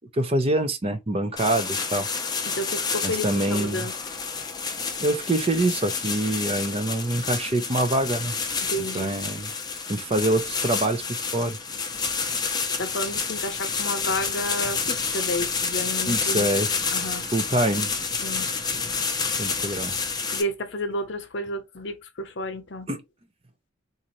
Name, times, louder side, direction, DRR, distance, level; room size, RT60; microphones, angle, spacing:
voice 1, 0.1-2.1 3.0-3.9 5.0-8.3 8.9-9.5 9.9-11.6 16.1-16.7 17.3-17.9 19.4-19.9 22.9-23.0, right 1 dB, 30° right, 0.5 m, -25 dB
sound 1, 1.4-20.4, left 5 dB, 20° left, 0.5 m, -29 dB
voice 2, 2.5-3.9 8.7-9.1 12.8-16.6 16.9-17.2 18.2-18.5 20.3-22.9, left 1 dB, 65° left, 0.8 m, -31 dB
4.0 x 2.6 x 3.0 m
head